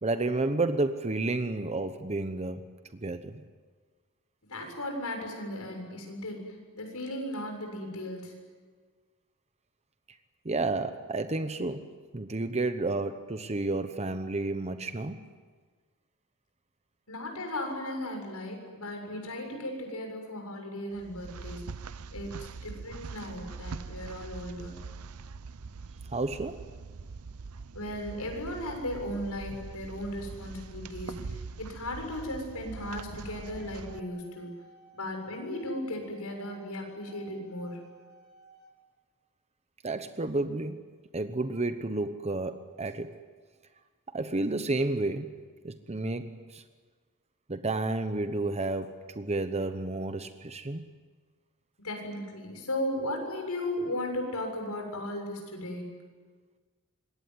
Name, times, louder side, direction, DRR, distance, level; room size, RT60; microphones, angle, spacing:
voice 1, 0.0-2.6 2.9-3.4 10.4-15.2 26.1-26.7 39.8-40.8 41.1-43.1 44.1-45.3 45.6-46.6 47.5-50.8, right 2 dB, 30° right, 9 dB, 1.0 m, -31 dB
voice 2, 4.5-8.3 17.1-21.6 22.1-24.8 27.7-34.5 34.9-37.8 51.8-55.9, left 1 dB, 85° left, 3 dB, 7.2 m, -36 dB
sound 1, 20.9-34.0, right 4 dB, 75° right, 0.7 m, -43 dB
sound 2, 32.6-38.7, left 1 dB, 70° left, 5.8 m, -57 dB
26.0 x 22.5 x 9.6 m, 1.5 s
head